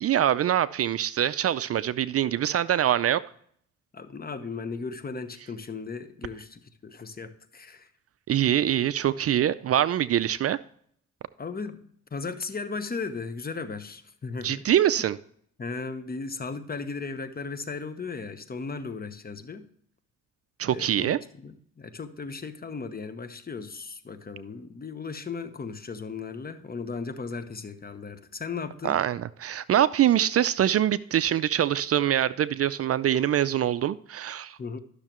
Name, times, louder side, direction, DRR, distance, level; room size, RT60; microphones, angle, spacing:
voice 1, 0.0-3.2 8.3-10.6 14.4-15.2 20.6-21.2 28.8-34.8, right 11 dB, 50° right, 0.5 m, -24 dB
voice 2, 3.9-7.9 11.4-14.6 15.6-19.7 20.7-29.0 34.6-34.8, left 4 dB, 30° left, 1.0 m, -36 dB
12.0 x 6.5 x 3.0 m
cardioid pair, 90°, 31 cm